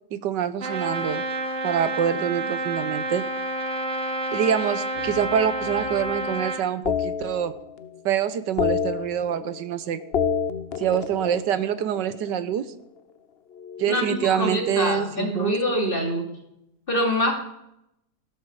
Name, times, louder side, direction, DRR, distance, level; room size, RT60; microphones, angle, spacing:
voice 1, 0.1-1.2 1.6-3.3 4.3-7.5 8.0-10.0 10.8-12.7 13.8-15.5, right 9 dB, 85° right, 14 dB, 1.6 m, -25 dB
Trumpet, 0.6-6.7, right 2 dB, 45° right, 2.1 m, -29 dB
sound 1, 5.0-6.2 6.9-8.0 8.3-9.7 10.0-12.4 13.6-15.3, left 7 dB, 50° left, 0.7 m, -30 dB
voice 2, 13.9-16.3 16.9-17.3, equal, 30° left, 1 dB, 3.0 m, -25 dB
16.5 x 12.5 x 4.8 m, 0.80 s
omnidirectional pair, 1.8 m